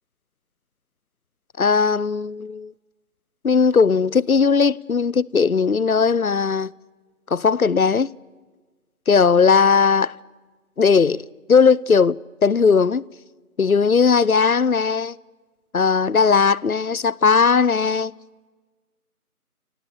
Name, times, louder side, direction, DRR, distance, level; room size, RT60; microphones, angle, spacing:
voice 1, 1.6-2.7 3.4-6.7 7.3-8.1 9.1-10.1 10.8-11.2 11.5-13.0 13.6-15.2 15.7-18.1, left 5 dB, 65° left, 0.7 m, -18 dB
28.5 x 26.0 x 7.5 m
figure-of-eight pair, 175°, 46 cm